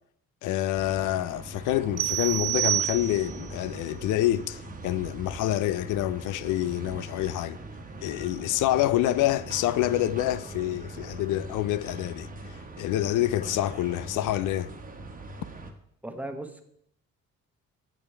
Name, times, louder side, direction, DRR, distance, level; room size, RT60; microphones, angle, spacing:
voice 1, 0.4-7.6 8.0-14.7, left 14 dB, 85° left, 0.5 m, -27 dB
sound 1, 0.8-15.7, right 2 dB, 30° right, 1.2 m, -41 dB
sound 2, 2.0-3.5, right 15 dB, 70° right, 0.5 m, -28 dB
voice 2, 16.0-16.6, right 1 dB, 5° right, 1.0 m, -36 dB
8.9 x 6.3 x 3.3 m
cardioid pair, 90°, 30 cm